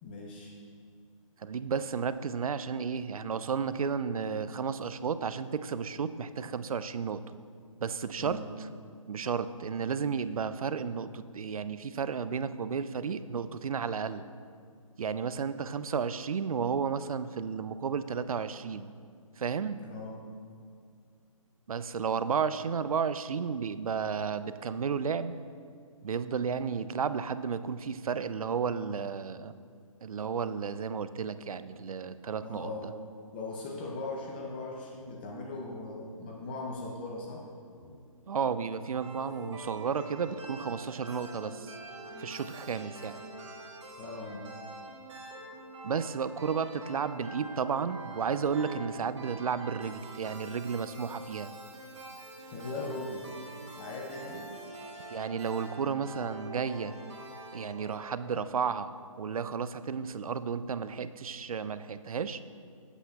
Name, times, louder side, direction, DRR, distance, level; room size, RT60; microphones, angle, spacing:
voice 1, 0.0-0.6 8.2-8.5 19.8-20.2 32.4-33.0 33.3-37.5 37.8-38.0 44.0-44.5 52.4-53.3 53.8-54.5, left 2 dB, 15° left, -1 dB, 0.5 m, -39 dB
voice 2, 1.4-7.4 7.8-8.4 9.1-14.2 15.0-18.9 19.4-19.8 21.7-25.4 26.0-29.5 30.0-32.7 38.3-41.7 42.2-43.2 45.8-51.5 55.1-56.9 57.5-62.4, right 6 dB, 80° right, 13 dB, 0.4 m, -33 dB
sound 1, 39.0-58.9, right 2 dB, 55° right, 1.3 m, -46 dB
11.5 x 8.1 x 2.3 m, 2.2 s
hypercardioid pair, 155°, 18 cm